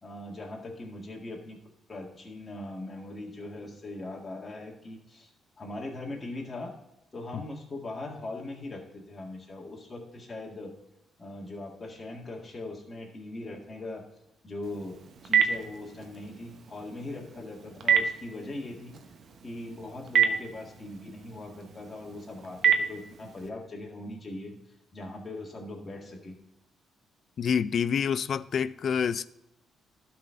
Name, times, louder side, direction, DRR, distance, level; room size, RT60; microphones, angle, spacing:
voice 1, 0.0-1.6 1.9-5.3 5.6-6.7 7.1-10.8 11.2-14.1 14.4-15.0 15.2-18.9 19.4-24.5 24.9-26.4, left 2 dB, 25° left, 1.9 m, -40 dB
Telephone, 14.6-23.5, right 7 dB, 60° right, 0.9 m, -30 dB
voice 2, 27.4-29.3, left 7 dB, 55° left, 0.3 m, -27 dB
12.0 x 4.2 x 5.6 m
cardioid pair, 90°, 0 cm